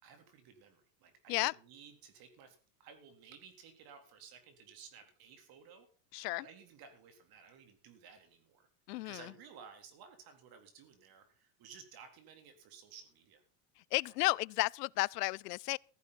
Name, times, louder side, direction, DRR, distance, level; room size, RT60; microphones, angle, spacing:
voice 1, 0.0-5.9 6.4-8.7 9.0-13.4 14.3-14.4, right 6 dB, 50° right, 3.9 m, -56 dB
voice 2, 6.1-6.5 8.9-9.2 13.9-15.8, left 21 dB, 85° left, 0.6 m, -33 dB
15.0 x 14.5 x 4.3 m
supercardioid pair, 110°, 46 cm